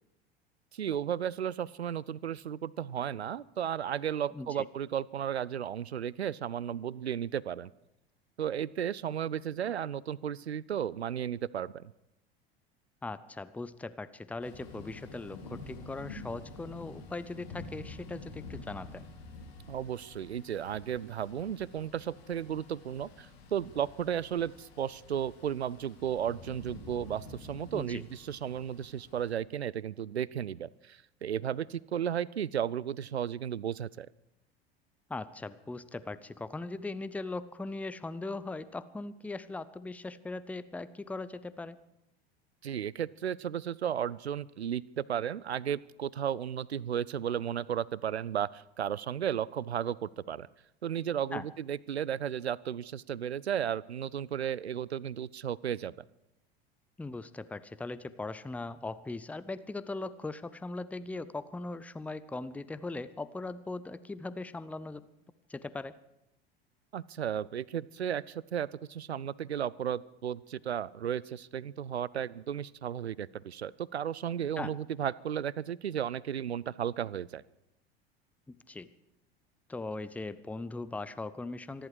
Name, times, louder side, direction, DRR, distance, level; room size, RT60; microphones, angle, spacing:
voice 1, 0.7-7.7 8.4-11.8 19.7-34.1 42.6-50.5 50.8-55.9 66.9-77.4, right 9 dB, 85° right, 23 dB, 0.5 m, -34 dB
voice 2, 4.3-4.6 13.0-19.1 27.7-28.0 35.1-41.8 51.3-51.5 57.0-65.1 65.5-65.9 74.6-74.7 78.5-78.9 79.7-81.9, left 3 dB, 5° left, 15 dB, 0.6 m, -39 dB
Thunder / Rain, 14.4-29.3, left 3 dB, 70° left, 4.2 m, -49 dB
25.0 x 11.5 x 4.8 m, 0.87 s
figure-of-eight pair, 75°, 31 cm